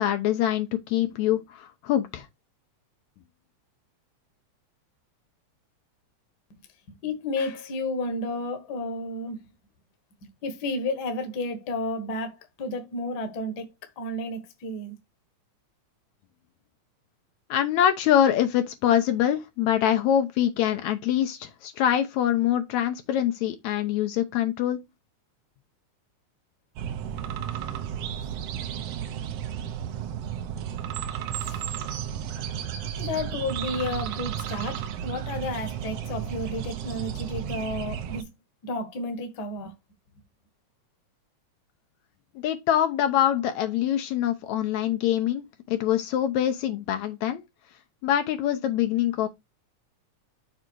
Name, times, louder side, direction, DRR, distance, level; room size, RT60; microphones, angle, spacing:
voice 1, 0.0-2.3 17.5-24.8 42.4-47.4 48.0-49.3, left 11 dB, 75° left, 2.0 m, -24 dB
voice 2, 6.9-9.4 10.4-13.7 14.0-14.9 31.3-31.6 33.0-38.3 38.6-39.7, left 2 dB, 45° left, 1.5 m, -32 dB
sound 1, 26.8-38.2, right 9 dB, 70° right, 1.6 m, -33 dB
6.8 x 3.6 x 4.5 m
omnidirectional pair, 3.4 m